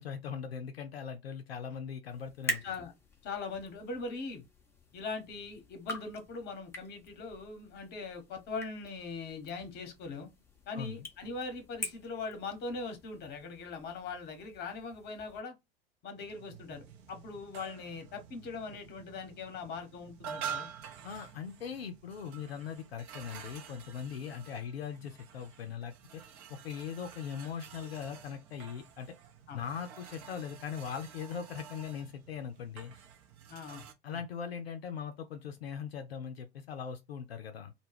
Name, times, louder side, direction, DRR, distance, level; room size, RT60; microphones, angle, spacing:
voice 1, 0.0-2.7 10.8-11.1 21.0-26.2 26.5-29.1 29.5-32.9 34.0-37.7, left 7 dB, 75° left, 0.5 m, -40 dB
sound 1, 2.1-15.4, equal, 10° left, 0.6 m, -45 dB
voice 2, 3.2-4.4 4.9-10.3 10.7-15.5 16.0-20.7 29.5-29.6 33.5-34.2, left 4 dB, 35° left, 0.9 m, -41 dB
sound 2, 16.1-33.9, right 8 dB, 40° right, 0.6 m, -48 dB
2.1 x 2.1 x 3.2 m
figure-of-eight pair, 85°, 30 cm